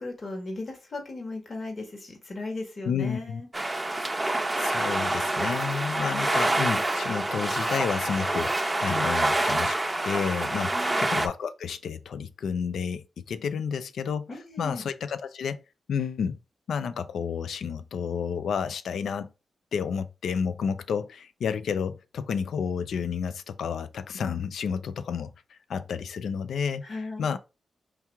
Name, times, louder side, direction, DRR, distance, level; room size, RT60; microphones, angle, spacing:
voice 1, 0.0-3.5 10.6-11.0 14.3-14.8 26.8-27.3, left 2 dB, 50° left, 1.6 m, -37 dB
voice 2, 2.9-3.4 4.6-14.3 14.6-15.6 15.9-16.4 16.7-19.3 19.7-27.4, left 6 dB, 80° left, 0.4 m, -31 dB
sound 1, 3.5-11.3, right 2 dB, 20° right, 0.7 m, -27 dB
4.6 x 3.0 x 3.4 m
cardioid pair, 60°, 0 cm